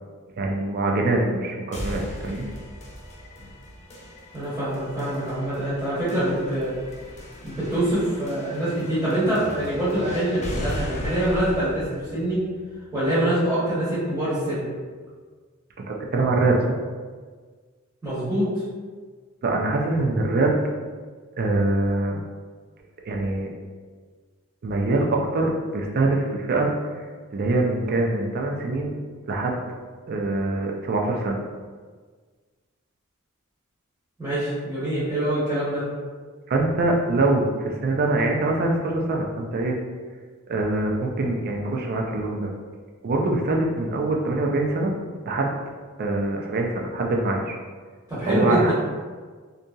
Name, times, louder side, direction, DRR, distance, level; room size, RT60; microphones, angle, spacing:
voice 1, 0.4-2.5 15.8-16.6 19.4-20.6 21.4-22.2 23.1-23.5 24.6-27.0 27.3-28.9 29.3-29.6 30.1-31.4 36.5-39.8 40.5-42.5 43.0-44.9 45.3-45.6 46.0-47.6 48.3-48.7, right 2 dB, 45° right, 0 dB, 0.4 m, -24 dB
sound 1, 1.7-13.7, left 1 dB, 30° left, 0.4 m, -37 dB
voice 2, 4.3-6.8 7.4-12.4 12.9-14.7 18.0-18.5 34.2-35.9 48.1-48.7, right 1 dB, 10° right, -12 dB, 0.9 m, -25 dB
2.7 x 2.6 x 2.3 m, 1.5 s
head